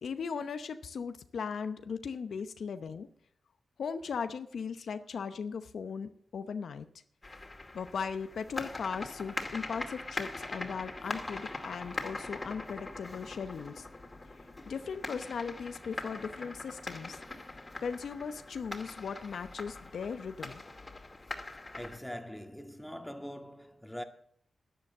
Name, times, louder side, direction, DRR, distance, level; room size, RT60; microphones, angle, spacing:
voice 1, 0.0-3.1 3.8-6.9 7.7-13.9 14.7-17.2 17.8-20.6, left 6 dB, 80° left, 0.8 m, -38 dB
sound 1, 7.2-22.0, left 2 dB, 35° left, 2.4 m, -42 dB
voice 2, 21.7-24.0, equal, 5° left, 1.9 m, -43 dB
11.0 x 10.5 x 7.4 m
cardioid pair, 50°, 0 cm